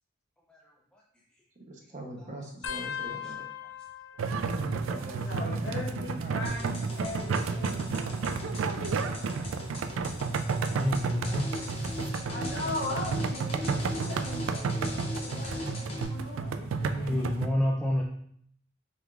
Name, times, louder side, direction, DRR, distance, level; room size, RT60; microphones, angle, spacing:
voice 1, 1.7-3.4 4.5-6.4 16.6-17.1, right 2 dB, 40° right, 1 dB, 0.8 m, -41 dB
sound 1, 2.6-5.8 6.1-6.7 7.7-9.2 9.8-10.1 11.3-11.7 13.2-13.3, left 8 dB, 90° left, 0.5 m, -42 dB
sound 2, 4.2-17.5, right 4 dB, 80° right, 0.3 m, -32 dB
voice 2, 5.0-8.2 8.6-8.9 12.3-17.5, left 2 dB, 60° left, -3 dB, 1.1 m, -39 dB
sound 3, 6.4-16.0, left 1 dB, 30° left, 0.8 m, -38 dB
voice 3, 10.6-11.5 15.6-15.8 17.0-18.0, left 1 dB, 5° left, -3 dB, 0.4 m, -29 dB
5.1 x 3.5 x 2.4 m, 0.67 s
head